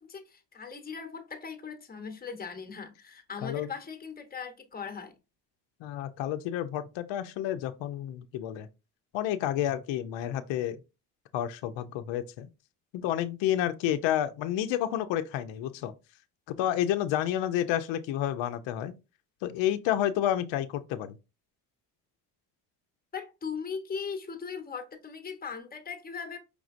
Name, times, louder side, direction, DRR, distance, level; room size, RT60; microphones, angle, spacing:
voice 1, 0.0-5.1 23.1-26.4, left 6 dB, 20° left, 1.0 m, -39 dB
voice 2, 5.8-8.7 9.1-10.8 11.3-12.5 12.9-15.9 16.5-18.9 19.4-21.1, left 11 dB, 65° left, 0.6 m, -30 dB
4.9 x 3.4 x 2.5 m
hypercardioid pair, 60°, 49 cm